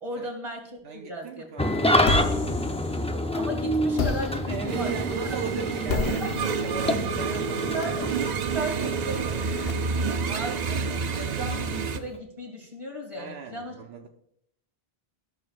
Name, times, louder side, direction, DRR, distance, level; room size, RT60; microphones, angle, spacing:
voice 1, 0.0-1.5 3.1-4.9 5.2-5.3 6.2-6.3 7.7-8.0 8.5-9.4 10.3-14.1, right 1 dB, 30° right, -1 dB, 2.3 m, -36 dB
voice 2, 0.8-2.3 4.5-8.0 8.6-9.5 13.2-14.1, right 5 dB, 75° right, 3 dB, 1.0 m, -38 dB
Engine starting / Idling, 1.6-12.2, left 1 dB, 10° left, 0.4 m, -29 dB
sound 1, 2.0-3.4 4.0-9.7, left 4 dB, 65° left, 1.1 m, -33 dB
sound 2, 4.7-12.0, right 6 dB, 55° right, 0.5 m, -29 dB
13.5 x 6.8 x 2.4 m, 0.71 s
omnidirectional pair, 1.1 m